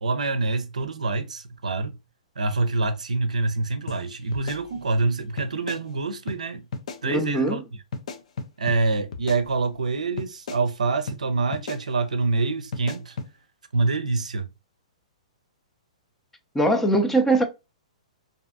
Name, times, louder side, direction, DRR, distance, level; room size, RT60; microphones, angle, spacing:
voice 1, 0.0-2.0 2.4-6.7 7.0-7.6 8.6-13.2 13.7-14.5, right 3 dB, 85° right, 0.4 m, -26 dB
sound 1, 3.9-4.0 4.3-5.1 5.4-5.8 6.3-6.4 6.7-7.0 7.9-8.8 9.1-9.9 10.2-10.6 11.1-11.2 11.5-11.8 12.7-13.3, left 4 dB, 65° left, 0.5 m, -35 dB
voice 2, 7.1-7.6 16.5-17.4, right 1 dB, 5° left, 0.4 m, -21 dB
2.5 x 2.3 x 2.4 m
hypercardioid pair, 125°, 4 cm